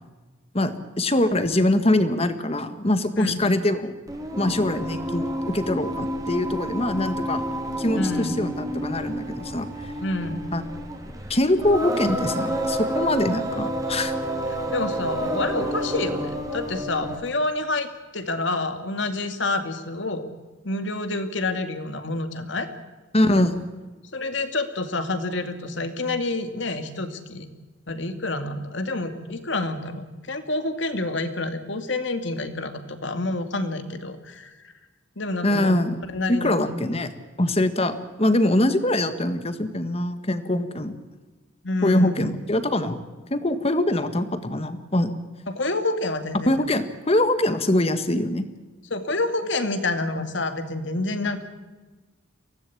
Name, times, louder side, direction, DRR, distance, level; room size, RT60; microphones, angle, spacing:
voice 1, 0.5-3.9 4.4-7.4 7.8-9.9 10.5-10.6 11.3-14.1 23.1-23.7 35.4-35.9 36.4-37.1 37.4-41.0 41.8-43.0 43.3-45.1 46.5-48.5, left 1 dB, 30° left, 10 dB, 1.7 m, -23 dB
Singing, 4.1-17.3, equal, 15° right, 2.8 m, -29 dB
voice 2, 7.9-8.4 10.0-10.5 14.7-20.3 20.6-22.7 24.1-27.5 27.9-34.7 35.2-35.8 36.1-36.8 41.6-42.3 45.5-46.5 48.9-51.4, left 2 dB, 65° left, 8 dB, 2.4 m, -28 dB
24.0 x 17.5 x 8.7 m, 1.2 s
head